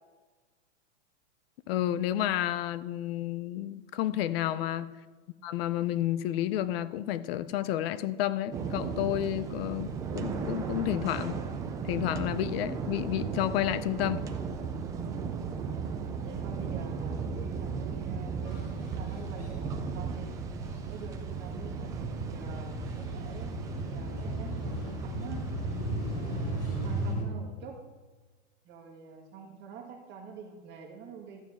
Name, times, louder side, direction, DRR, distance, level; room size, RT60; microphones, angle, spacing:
voice 1, 1.7-4.9 5.4-11.4 11.8-14.3, left 12 dB, 50° left, 16 dB, 0.6 m, -30 dB
voice 2, 4.4-4.7 16.2-20.3 20.8-23.6 23.8-25.4 26.0-27.8 28.6-31.4, right 5 dB, 30° right, 0 dB, 1.7 m, -47 dB
sound 1, 8.5-27.1, right 5 dB, 10° right, 0.3 m, -36 dB
sound 2, 18.5-27.2, equal, 35° left, 3.3 m, -37 dB
13.5 x 9.1 x 3.5 m, 1.3 s
hypercardioid pair, 135°, 37 cm